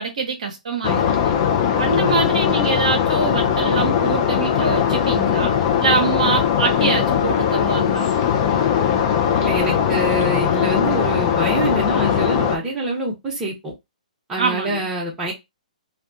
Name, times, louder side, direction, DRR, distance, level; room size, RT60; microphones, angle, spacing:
voice 1, 0.0-1.3 1.8-5.5 5.8-8.1 14.4-14.9, right 4 dB, 60° right, 0.7 m, -24 dB
sound 1, 0.8-12.6, left 8 dB, 35° left, 0.5 m, -20 dB
voice 2, 9.4-13.7 14.3-15.3, right 1 dB, 15° right, 0.9 m, -25 dB
2.5 x 2.2 x 2.6 m
figure-of-eight pair, 125°, 4 cm